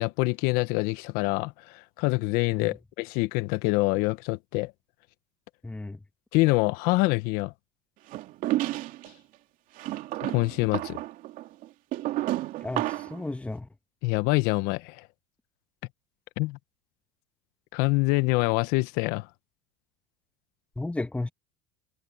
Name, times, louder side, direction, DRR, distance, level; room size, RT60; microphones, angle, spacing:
voice 1, 0.0-4.7 6.3-7.5 10.2-11.0 14.0-15.1 16.4-16.6 17.7-19.3, left 22 dB, 65° left, 1.2 m, -25 dB
voice 2, 5.6-6.0 12.6-13.7 20.7-21.3, left 2 dB, 10° left, 1.5 m, -34 dB
sound 1, 8.1-9.1 9.8-13.2, right 16 dB, 55° right, 2.7 m, -31 dB
supercardioid pair, 100°, 16 cm